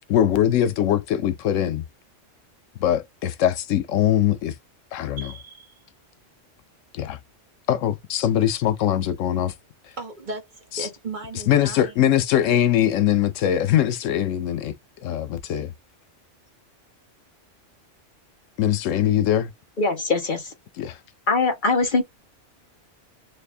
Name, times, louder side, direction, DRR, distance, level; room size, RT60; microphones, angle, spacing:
voice 1, 0.1-1.8 2.8-4.5 4.9-5.3 6.9-7.2 7.7-9.5 10.7-10.9 11.5-14.7 15.0-15.7 18.6-19.5 20.8-21.0, left 11 dB, 90° left, 1.0 m, -22 dB
voice 2, 5.2-5.8 10.0-11.9, right 2 dB, 40° right, 1.3 m, -36 dB
voice 3, 19.8-20.5 21.3-22.0, left 3 dB, 45° left, 1.0 m, -22 dB
3.4 x 2.4 x 3.4 m
omnidirectional pair, 1.3 m